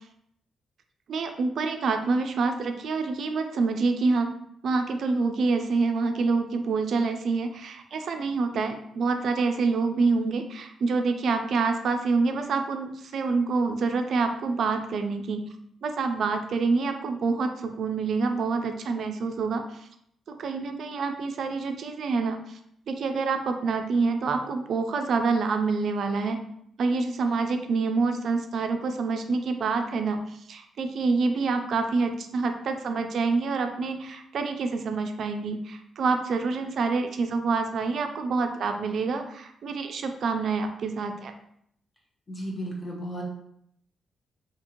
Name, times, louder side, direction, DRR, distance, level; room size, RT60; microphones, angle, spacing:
voice 1, 1.1-4.3 4.6-15.4 15.8-19.6 20.4-22.6 22.9-26.4 26.8-41.3, right 4 dB, 65° right, 6 dB, 0.3 m, -27 dB
voice 2, 42.3-43.2, equal, 30° left, -2 dB, 0.9 m, -34 dB
2.8 x 2.6 x 2.8 m, 0.71 s
cardioid pair, 105°, 0 cm